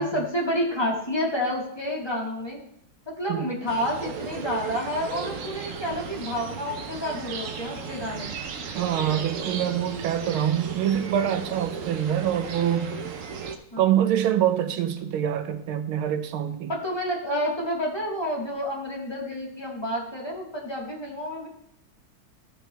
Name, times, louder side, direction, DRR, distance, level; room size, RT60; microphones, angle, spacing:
voice 1, 0.0-2.6 3.1-8.3 13.7-13.9 16.7-21.5, equal, 10° left, 2.0 m, -29 dB
sound 1, 3.7-13.6, right 6 dB, 60° right, 0.8 m, -35 dB
voice 2, 8.8-12.9 13.8-16.7, right 10 dB, 85° right, 1.6 m, -25 dB
14.0 x 6.1 x 3.4 m
omnidirectional pair, 2.3 m